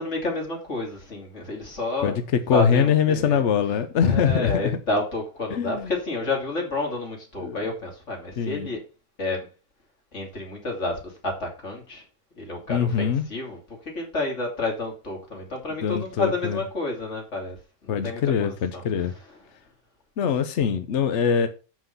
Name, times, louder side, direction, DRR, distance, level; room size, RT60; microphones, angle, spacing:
voice 1, 0.0-2.2 2.5-3.4 4.0-8.8 9.2-9.5 10.1-12.0 12.4-18.8 19.1-19.4, left 2 dB, 40° left, 3.2 m, -30 dB
voice 2, 2.5-4.8 5.5-5.9 7.4-7.6 8.4-8.7 12.7-13.2 15.8-16.6 17.9-19.1 20.2-21.5, left 7 dB, 55° left, 0.8 m, -23 dB
7.5 x 6.0 x 5.5 m
omnidirectional pair, 1.9 m